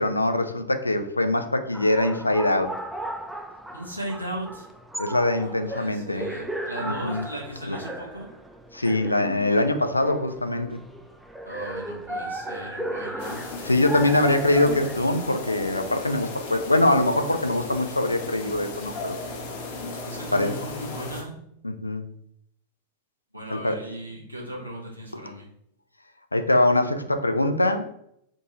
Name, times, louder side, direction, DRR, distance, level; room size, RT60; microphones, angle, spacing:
voice 1, 0.0-2.8 5.0-6.4 6.8-7.3 7.7-7.8 8.7-10.8 13.6-19.2 20.3-20.5 21.6-22.1 23.5-23.8 26.3-27.9, left 1 dB, 85° left, 7 dB, 0.3 m, -23 dB
sound 1, 1.7-15.0, right 1 dB, 5° right, 0.3 m, -36 dB
voice 2, 3.7-4.7 5.2-8.3 11.4-13.5 13.9-14.4 20.0-21.3 23.3-25.5, right 1 dB, 85° right, -2 dB, 0.9 m, -37 dB
sound 2, 13.2-21.2, left 3 dB, 55° left, 0.7 m, -36 dB
3.7 x 2.4 x 2.9 m, 0.74 s
figure-of-eight pair, 90°, 0 cm